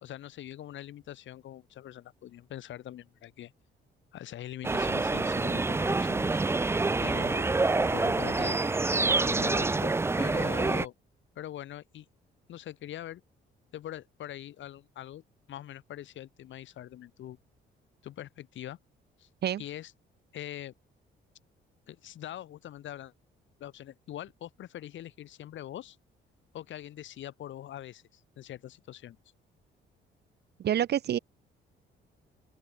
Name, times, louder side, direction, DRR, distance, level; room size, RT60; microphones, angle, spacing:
voice 1, 0.0-3.5 4.1-6.4 7.0-8.6 9.3-10.9 11.4-12.1 12.5-13.2 13.7-15.2 15.5-17.4 18.0-18.8 19.2-19.3 19.6-19.9 20.3-20.7 21.9-23.1 23.6-26.0 26.5-29.2, left 12 dB, 75° left, 1.9 m, -43 dB
sound 1, 4.6-10.9, right 3 dB, 15° right, 0.4 m, -27 dB
voice 2, 30.6-31.2, right 10 dB, 55° right, 0.7 m, -27 dB
open air
cardioid pair, 90°, 20 cm